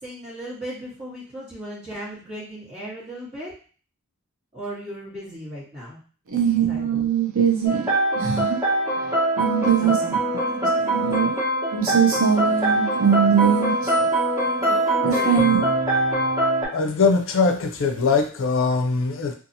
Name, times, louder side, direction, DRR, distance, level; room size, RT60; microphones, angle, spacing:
voice 1, 0.0-3.5 4.5-6.0 6.6-7.0 9.6-10.9 14.6-15.5, right 1 dB, 30° right, -9 dB, 1.3 m, -37 dB
voice 2, 6.3-7.9 8.1-8.6 9.0-10.2 10.6-11.4 11.7-14.1 15.0-15.7, right 8 dB, 65° right, 0 dB, 0.6 m, -22 dB
sound 1, 7.6-16.7, right 1 dB, 15° right, 1.1 m, -23 dB
voice 3, 16.7-19.3, left 4 dB, 60° left, 5 dB, 0.5 m, -21 dB
2.7 x 2.4 x 2.6 m, 0.41 s
head